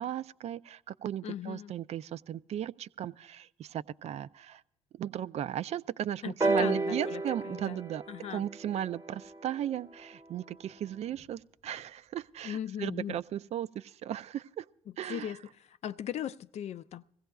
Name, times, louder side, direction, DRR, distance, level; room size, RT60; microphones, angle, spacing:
voice 1, 0.0-4.6 4.9-8.0 8.3-14.7 15.0-15.3, right 10 dB, 50° right, 0.4 m, -36 dB
voice 2, 1.2-1.7 6.2-7.8 8.1-8.5 12.4-13.2 14.9-17.0, left 10 dB, 50° left, 0.4 m, -39 dB
sound 1, 6.4-10.2 11.2-11.3, right 2 dB, 20° right, 0.9 m, -33 dB
21.5 x 16.0 x 2.3 m
hypercardioid pair, 55°, 14 cm